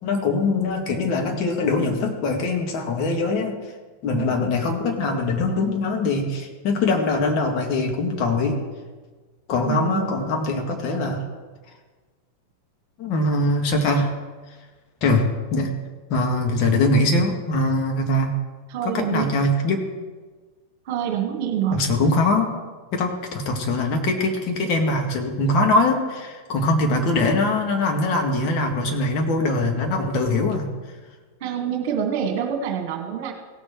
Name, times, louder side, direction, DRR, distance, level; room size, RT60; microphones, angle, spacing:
voice 1, 0.0-3.6 4.0-8.6 9.5-11.2 13.0-14.1 15.0-15.7 16.1-18.3 18.8-19.9 21.7-22.5 22.9-30.7, left 2 dB, 40° left, 2 dB, 1.9 m, -22 dB
voice 2, 4.1-4.5 9.7-10.1 18.7-19.3 20.9-21.9 31.4-33.3, right 8 dB, 45° right, 3 dB, 1.9 m, -26 dB
17.0 x 6.9 x 4.6 m, 1.4 s
figure-of-eight pair, 90°, 0 cm